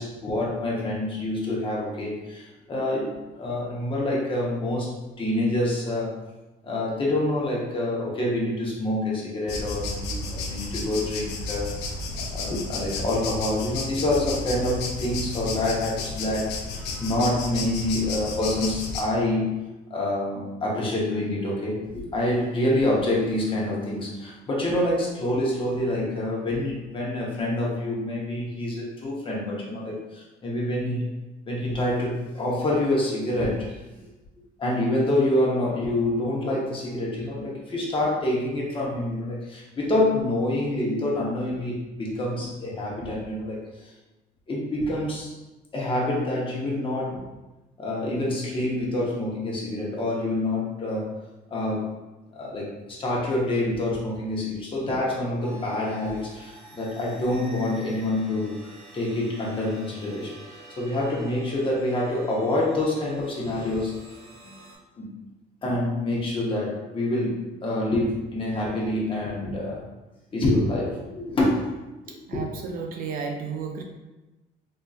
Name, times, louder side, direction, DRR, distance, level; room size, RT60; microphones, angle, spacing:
voice 1, 0.0-6.1 6.6-11.7 12.1-19.6 19.9-31.1 31.5-34.1 34.6-43.9 44.5-45.3 45.7-47.2 47.8-51.1 51.5-51.9 52.3-58.5 58.9-60.4 60.8-64.0 65.0-65.2 65.6-69.9 70.3-71.6 72.1-72.4, left 1 dB, 30° left, -4 dB, 1.0 m, -27 dB
sound 1, 9.5-19.0, left 3 dB, 90° left, 0.5 m, -32 dB
sound 2, 55.4-64.7, equal, 80° right, 1.4 m, -46 dB
voice 2, 72.1-73.8, right 5 dB, 60° right, 3 dB, 0.4 m, -33 dB
3.6 x 2.6 x 2.4 m, 1.1 s
cardioid pair, 110°, 17 cm